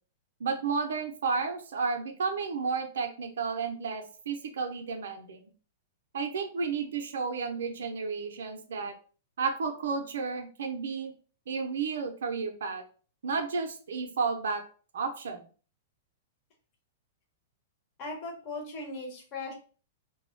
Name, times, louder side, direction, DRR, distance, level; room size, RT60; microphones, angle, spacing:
voice 1, 0.4-5.4 6.1-8.9 9.4-11.1 11.5-12.8 13.2-14.6 14.9-15.5, right 5 dB, 80° right, 4 dB, 0.5 m, -32 dB
voice 2, 18.0-19.5, left 2 dB, 40° left, 0 dB, 0.9 m, -38 dB
2.2 x 2.0 x 3.0 m, 0.39 s
hypercardioid pair, 140°, 0 cm